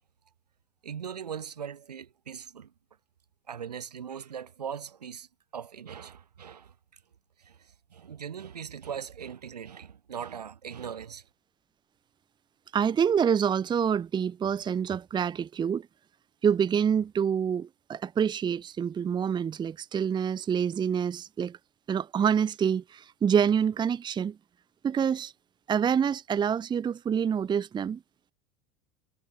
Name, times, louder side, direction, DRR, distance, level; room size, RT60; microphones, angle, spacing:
voice 1, 0.8-2.7 3.5-7.0 7.4-11.3, right 8 dB, 75° right, 6.5 m, -40 dB
voice 2, 12.7-15.9 16.4-21.6 21.9-24.4 24.8-25.3 25.7-28.0, right 7 dB, 20° right, 0.9 m, -26 dB
figure-of-eight pair, 80°, 21 cm